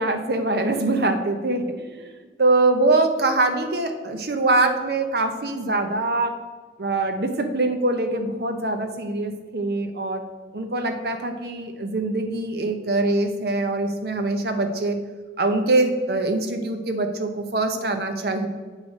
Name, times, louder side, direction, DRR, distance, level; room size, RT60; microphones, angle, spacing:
voice 1, 0.0-6.3 6.8-10.2 10.5-15.0 15.4-18.5, right 2 dB, 60° right, 6 dB, 0.7 m, -23 dB
8.1 x 3.3 x 5.1 m, 1.3 s
head